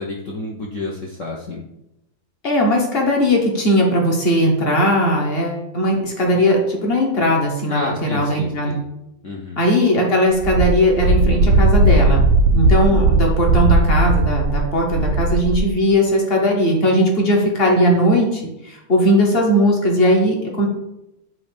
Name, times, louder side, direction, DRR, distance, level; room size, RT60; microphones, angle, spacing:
voice 1, 0.0-1.6 7.7-8.8 9.2-9.6, left 2 dB, 65° left, -2 dB, 0.7 m, -29 dB
voice 2, 2.4-8.8 9.6-12.3 12.5-20.7, equal, 35° left, 0 dB, 1.0 m, -18 dB
Wind, 10.4-15.7, right 2 dB, 90° right, 1.7 m, -16 dB
7.2 x 2.7 x 5.1 m, 0.86 s
omnidirectional pair, 2.3 m